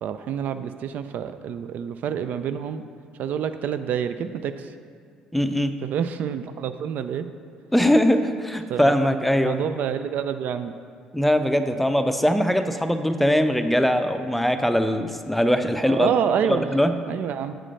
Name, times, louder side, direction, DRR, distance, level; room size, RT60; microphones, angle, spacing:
voice 1, 0.0-2.8 3.2-4.7 5.8-7.3 8.7-8.9 9.4-10.7 15.8-16.7 17.1-17.5, right 8 dB, 60° right, 10 dB, 0.4 m, -27 dB
voice 2, 5.3-5.8 7.7-9.6 11.1-16.1 16.4-16.9, equal, 5° left, 8 dB, 0.5 m, -21 dB
7.6 x 4.9 x 5.5 m, 2.2 s
hypercardioid pair, 55°, 3 cm